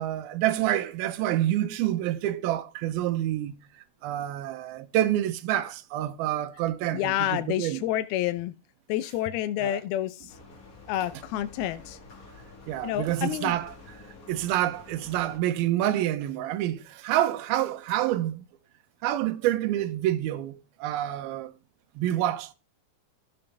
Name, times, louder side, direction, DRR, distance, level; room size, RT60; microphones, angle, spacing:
voice 1, 0.0-3.6 4.0-7.8 9.6-9.8 12.7-14.0 14.3-18.5 19.0-21.5 22.0-22.5, right 13 dB, 80° right, 2.7 m, -27 dB
voice 2, 6.9-8.5 8.9-10.3 10.9-12.0 12.8-13.5, left 12 dB, 85° left, 2.6 m, -29 dB
sound 1, 10.3-15.4, left 3 dB, 50° left, 1.0 m, -49 dB
14.0 x 6.9 x 3.3 m
omnidirectional pair, 4.4 m